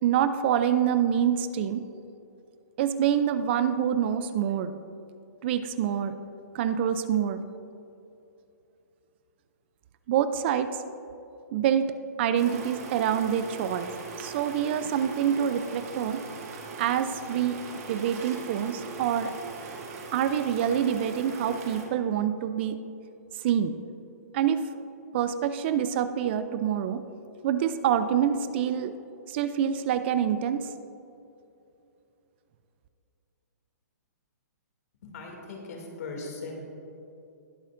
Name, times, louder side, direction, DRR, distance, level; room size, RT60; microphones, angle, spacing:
voice 1, 0.0-1.8 2.8-4.7 5.4-6.1 6.5-7.4 10.1-10.7 11.5-13.9 14.2-16.2 16.8-17.6 17.9-19.3 20.1-22.8 23.4-23.7 24.3-24.6 25.1-27.0 27.4-28.9 29.3-30.7, right 9 dB, 40° right, 11 dB, 0.4 m, -26 dB
sound 1, 12.4-21.8, right 4 dB, 55° right, 1.9 m, -40 dB
voice 2, 35.0-36.6, left 3 dB, 60° left, 1 dB, 2.4 m, -39 dB
20.0 x 6.6 x 2.6 m, 2.7 s
hypercardioid pair, 150°, 9 cm